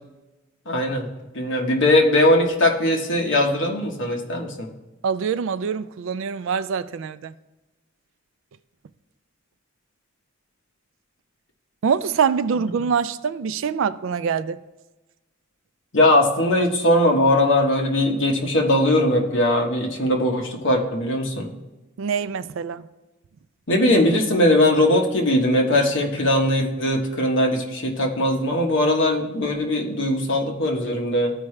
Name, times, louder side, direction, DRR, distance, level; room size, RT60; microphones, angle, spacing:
voice 1, 0.7-1.1 1.3-4.7 15.9-21.5 23.7-31.3, left 1 dB, 60° left, 1.2 m, -20 dB
voice 2, 5.0-7.3 11.8-14.6 22.0-22.9, right 6 dB, 65° right, 0.3 m, -24 dB
14.0 x 4.7 x 3.2 m
head